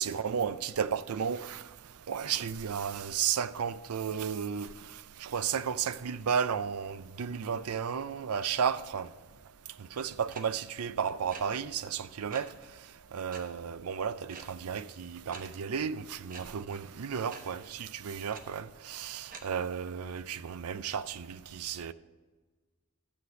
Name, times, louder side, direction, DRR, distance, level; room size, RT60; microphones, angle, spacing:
voice 1, 0.0-1.6 2.1-4.7 5.2-9.1 9.9-12.5 13.1-21.9, right 7 dB, 85° right, 0.5 m, -33 dB
sound 1, 10.3-10.4 11.3-11.4 12.3-12.4 13.3-13.4 14.3-14.4 15.3-15.4 16.3-16.4 17.3-17.4 18.3-18.4 19.3-19.4, right 5 dB, 40° right, 1.1 m, -44 dB
12.0 x 8.0 x 5.2 m
head